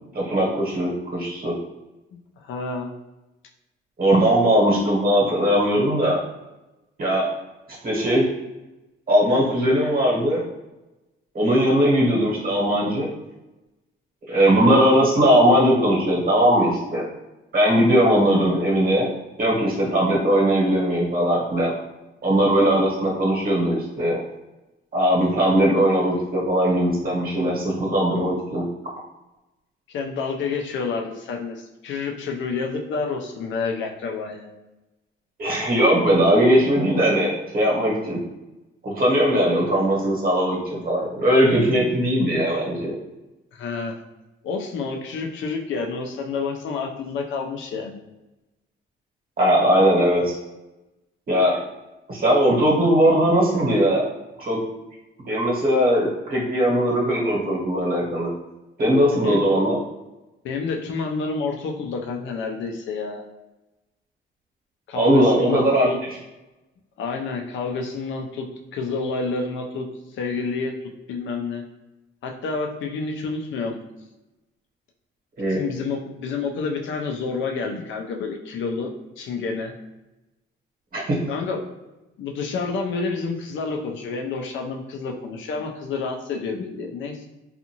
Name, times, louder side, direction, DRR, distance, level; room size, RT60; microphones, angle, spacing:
voice 1, 0.1-1.5 4.0-6.2 7.0-7.2 7.8-8.2 9.1-10.4 11.3-13.1 14.3-17.1 17.5-19.1 19.4-21.7 22.2-24.2 24.9-28.6 35.4-38.2 38.8-40.6 40.8-42.9 49.4-50.4 51.3-51.6 52.1-54.0 54.4-54.6 55.2-58.3 58.8-59.8 64.9-65.9 75.4-75.6 80.9-81.0, equal, 45° right, -4 dB, 1.1 m, -19 dB
voice 2, 2.1-2.9 29.9-34.5 43.5-43.9 44.4-48.0 59.2-59.4 60.4-63.2 64.9-66.0 67.0-68.5 68.7-69.9 70.1-70.7 71.1-71.6 72.2-73.8 75.5-79.7 81.3-81.6 82.2-87.3, left 4 dB, 75° left, 2 dB, 0.5 m, -29 dB
2.6 x 2.5 x 2.9 m, 1.0 s
cardioid pair, 90°, 20 cm